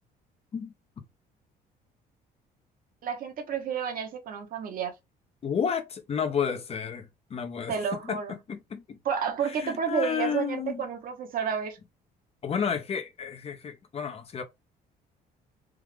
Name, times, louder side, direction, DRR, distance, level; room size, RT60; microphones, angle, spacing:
voice 1, 3.0-4.9 7.7-8.4 9.0-11.8, right 7 dB, 60° right, 1.1 m, -30 dB
voice 2, 5.4-7.8 8.0-8.2 8.5-9.0 9.4-10.8 12.4-14.4, left 7 dB, 35° left, 0.7 m, -31 dB
3.6 x 2.4 x 3.2 m
cardioid pair, 110°, 17 cm